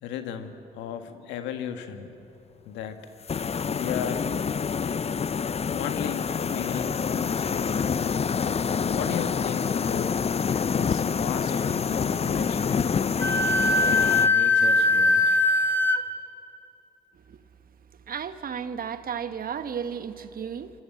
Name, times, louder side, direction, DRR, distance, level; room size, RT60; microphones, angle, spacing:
voice 1, 0.0-2.1 2.6-3.0 3.8-4.3 5.7-7.8 8.9-10.1 10.5-13.0 13.8-15.4, left 8 dB, 80° left, 7 dB, 1.7 m, -35 dB
sound 1, 3.3-14.3, left 6 dB, 35° left, 0.6 m, -27 dB
Wind instrument woodwind instrument, 13.2-16.0, left 2 dB, 10° left, 1.9 m, -21 dB
voice 2, 18.1-20.7, right 7 dB, 55° right, 10 dB, 1.5 m, -33 dB
27.0 x 24.0 x 7.8 m, 2.9 s
hypercardioid pair, 50°, 18 cm